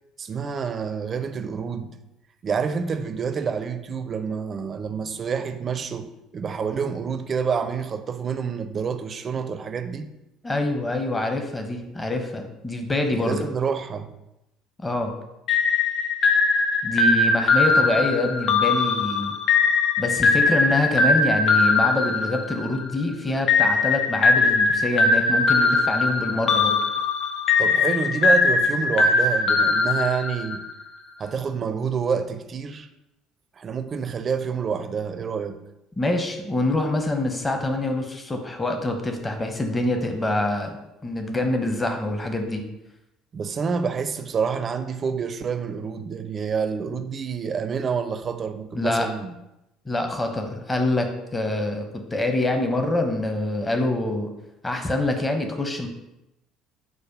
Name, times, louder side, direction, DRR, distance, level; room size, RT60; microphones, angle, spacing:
voice 1, 0.2-1.9 2.4-6.1 6.3-10.1 13.1-14.1 27.6-30.6 31.2-32.9 33.6-35.6 43.3-49.3, right 6 dB, 40° right, 0.4 m, -28 dB
voice 2, 10.4-13.4 14.8-15.1 16.8-19.3 20.0-26.8 36.0-42.6 48.7-49.1 49.9-54.3 54.6-55.9, left 2 dB, 20° left, 0.8 m, -25 dB
sound 1, 15.5-22.9 23.5-30.7, left 3 dB, 45° left, 0.4 m, -20 dB
4.7 x 2.2 x 4.6 m
figure-of-eight pair, 55°, 0 cm